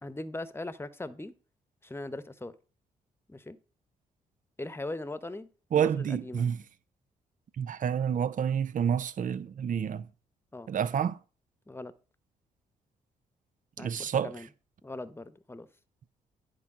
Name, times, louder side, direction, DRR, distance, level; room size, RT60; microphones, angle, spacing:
voice 1, 0.0-1.3 1.8-2.5 3.3-3.6 4.6-5.5 5.7-6.5 10.5-10.7 11.7-11.9 13.8-14.5 14.8-15.7, left 2 dB, 15° left, 1.1 m, -40 dB
voice 2, 5.7-6.6 7.6-10.1 10.7-11.2 13.8-14.3, right 8 dB, 55° right, 0.7 m, -29 dB
9.9 x 4.7 x 6.1 m
supercardioid pair, 55°, 16 cm